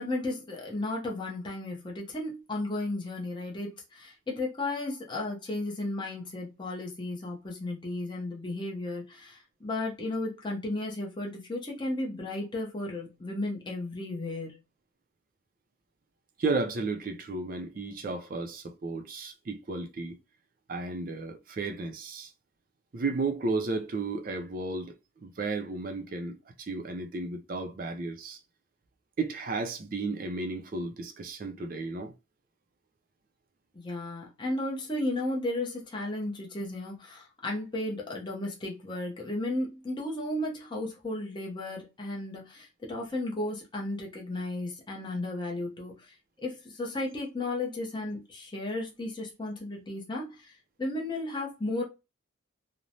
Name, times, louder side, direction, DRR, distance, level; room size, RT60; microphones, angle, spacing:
voice 1, 0.0-14.6 33.7-51.8, left 2 dB, 20° left, 0.6 m, -34 dB
voice 2, 16.4-20.2 20.7-22.3 22.9-24.9 25.2-28.4 29.2-32.1, right 3 dB, 45° right, 0.4 m, -33 dB
3.1 x 2.0 x 2.6 m
head